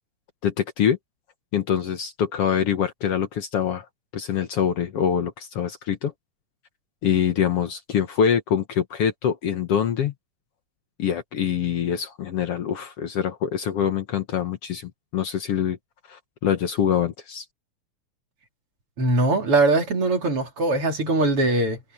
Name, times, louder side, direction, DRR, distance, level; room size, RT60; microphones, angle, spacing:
voice 1, 0.4-1.0 1.5-3.9 4.1-6.1 7.0-10.1 11.0-15.8 16.1-17.5, left 8 dB, 60° left, 2.0 m, -24 dB
voice 2, 19.0-21.8, right 2 dB, 50° right, 4.2 m, -21 dB
omnidirectional pair, 3.3 m